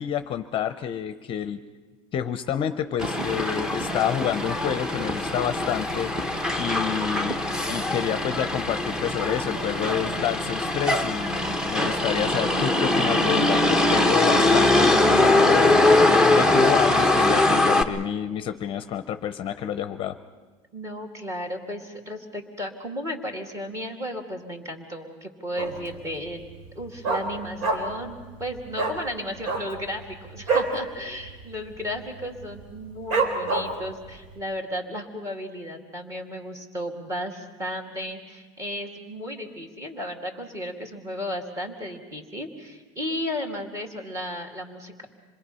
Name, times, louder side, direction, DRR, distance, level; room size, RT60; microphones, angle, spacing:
voice 1, 0.0-1.6 2.1-7.4 7.7-15.9 16.3-20.2, left 9 dB, 35° left, 10 dB, 0.7 m, -29 dB
Motor vehicle (road), 3.0-17.8, left 2 dB, 5° right, 0.8 m, -22 dB
voice 2, 20.7-45.1, equal, 20° right, 3 dB, 2.4 m, -34 dB
Dog, 25.6-26.0 26.3-26.4 26.6-28.1 28.3-28.5 28.7-29.0 29.4-30.8 31.1-31.3 31.6-32.0 32.4-32.5 33.1-33.9 34.4-34.5, right 3 dB, 85° right, 4.0 m, -26 dB
26.5 x 21.0 x 5.6 m, 1.4 s
supercardioid pair, 145°, 16 cm